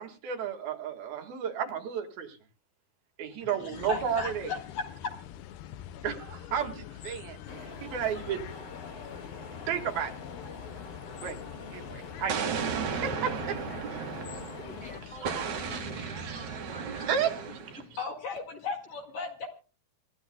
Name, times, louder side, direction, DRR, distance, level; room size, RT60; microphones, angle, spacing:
voice 1, 0.0-2.4 3.2-4.5 6.0-8.6 9.7-10.1 11.2-11.4 11.7-13.9 15.2-15.4 15.7-15.8 16.2-16.4 17.1-17.3, right 8 dB, 70° right, 5 dB, 3.4 m, -33 dB
voice 2, 3.4-5.1 18.0-19.5, left 4 dB, 55° left, 4 dB, 2.8 m, -36 dB
sound 1, 3.7-16.1, left 11 dB, 80° left, 2.9 m, -45 dB
sound 2, 7.5-15.0, left 3 dB, 35° left, 1.9 m, -45 dB
Explosion, 12.3-14.7 15.2-17.8, right 6 dB, 55° right, 2.7 m, -35 dB
voice 3, 14.1-17.8, right 2 dB, ahead, 1 dB, 2.6 m, -48 dB
27.0 x 15.0 x 2.2 m, 0.34 s
omnidirectional pair, 4.6 m